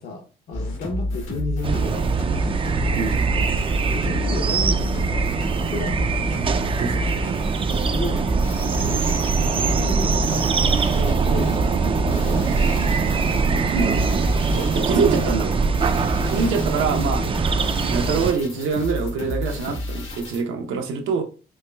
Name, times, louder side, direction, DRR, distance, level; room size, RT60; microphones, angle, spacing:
voice 1, 0.0-2.5 3.9-6.5 8.0-8.2 8.6-13.0 15.0-15.2 16.2-17.0 20.5-20.8, left 3 dB, 55° left, 0.7 m, -34 dB
sound 1, 0.5-20.4, left 1 dB, 75° left, 1.3 m, -30 dB
sound 2, 1.6-18.3, right 4 dB, 25° right, 0.3 m, -22 dB
voice 2, 2.9-3.3 6.8-7.4 13.7-14.0 14.5-15.5 16.3-17.5 17.9-21.2, right 5 dB, 85° right, 0.8 m, -25 dB
4.6 x 3.0 x 2.2 m
cardioid pair, 90°, 20 cm